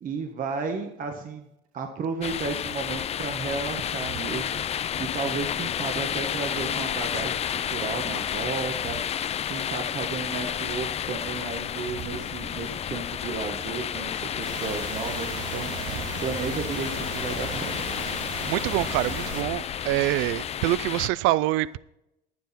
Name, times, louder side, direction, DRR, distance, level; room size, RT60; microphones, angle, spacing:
voice 1, 0.0-1.5 1.7-9.0 9.5-17.8, right 4 dB, 40° right, 1.2 m, -33 dB
sound 1, 2.2-21.1, left 9 dB, 30° left, 0.4 m, -31 dB
sound 2, 14.4-19.4, right 4 dB, 90° right, 2.0 m, -36 dB
voice 2, 18.5-21.8, right 17 dB, 70° right, 0.4 m, -25 dB
11.5 x 9.6 x 4.2 m
cardioid pair, 110°, 21 cm